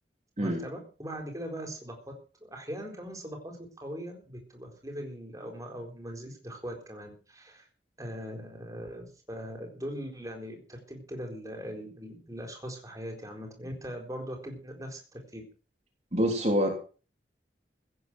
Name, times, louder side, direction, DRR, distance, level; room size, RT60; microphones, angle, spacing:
voice 1, 0.4-2.0 2.4-7.6 8.0-15.4, equal, 20° right, 2 dB, 4.2 m, -40 dB
voice 2, 16.1-16.7, equal, 40° right, 1 dB, 3.4 m, -25 dB
16.5 x 9.3 x 6.2 m, 0.38 s
head